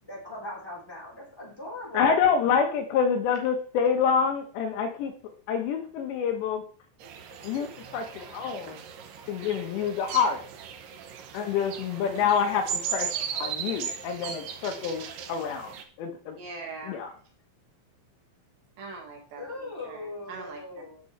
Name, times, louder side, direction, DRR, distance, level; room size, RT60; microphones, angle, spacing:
voice 1, 0.0-2.2 19.4-21.0, left 2 dB, 5° left, -5 dB, 3.8 m, -39 dB
voice 2, 1.9-6.6 7.4-8.8 9.3-10.4 11.3-16.4 16.8-17.1, left 6 dB, 75° left, 4 dB, 3.1 m, -27 dB
sound 1, 7.0-15.8, right 7 dB, 90° right, 1.9 m, -37 dB
voice 3, 16.4-17.0 18.8-20.6, right 4 dB, 65° right, 0 dB, 3.8 m, -42 dB
13.5 x 6.8 x 3.2 m, 0.41 s
omnidirectional pair, 5.6 m